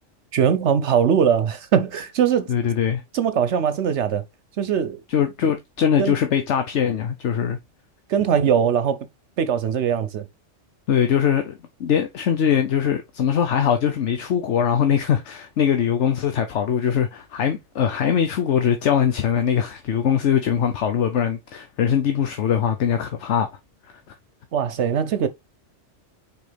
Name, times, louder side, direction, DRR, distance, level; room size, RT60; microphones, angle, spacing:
voice 1, 0.3-2.5 3.1-4.2 4.6-5.0 6.0-6.2 8.1-9.1 9.4-10.3 24.5-25.3, right 8 dB, 70° right, 1.0 m, -21 dB
voice 2, 2.5-3.0 5.1-7.6 10.9-23.5, left 8 dB, 70° left, 1.1 m, -22 dB
6.5 x 5.0 x 3.4 m
omnidirectional pair, 1.3 m